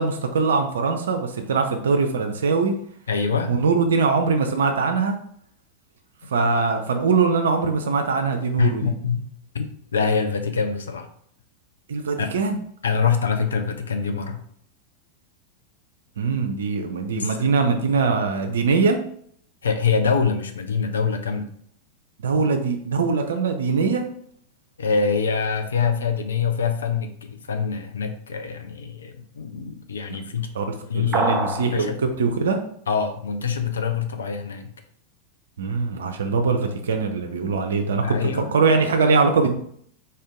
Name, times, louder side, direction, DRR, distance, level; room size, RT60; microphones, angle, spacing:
voice 1, 0.0-2.7 3.5-5.2 6.3-8.9 11.9-12.6 16.2-19.0 22.2-24.1 30.5-30.6 30.9-31.9 32.2-32.6 35.6-39.6, right 4 dB, 65° right, 5 dB, 0.4 m, -22 dB
voice 2, 3.1-3.5 8.6-9.3 9.5-11.1 12.2-12.3 12.8-14.4 17.1-17.4 19.6-21.5 24.8-30.5 30.9-32.0 32.9-34.7 38.0-38.6, left 5 dB, 70° left, 7 dB, 0.4 m, -25 dB
sound 1, 31.1-31.7, right 1 dB, 20° right, 0.6 m, -23 dB
4.1 x 2.6 x 3.6 m, 0.65 s
figure-of-eight pair, 90°, 0 cm